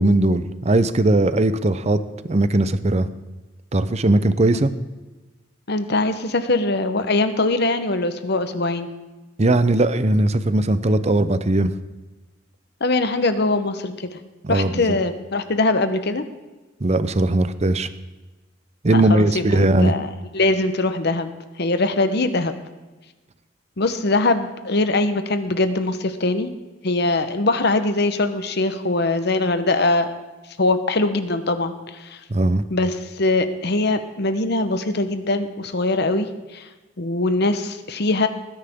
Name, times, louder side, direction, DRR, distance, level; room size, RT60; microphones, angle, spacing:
voice 1, 0.0-2.0 2.2-3.1 3.7-4.7 9.4-11.7 14.4-15.0 16.8-17.9 18.8-20.0 32.3-32.6, right 2 dB, 35° right, 12 dB, 0.7 m, -19 dB
voice 2, 5.7-8.9 12.8-14.1 14.5-16.2 18.9-21.3 21.6-22.5 23.8-26.5 26.8-30.1 30.6-32.2 32.7-36.3 36.5-36.7 37.0-38.3, left 2 dB, 60° left, 10 dB, 1.0 m, -22 dB
20.0 x 10.5 x 3.7 m, 1.2 s
head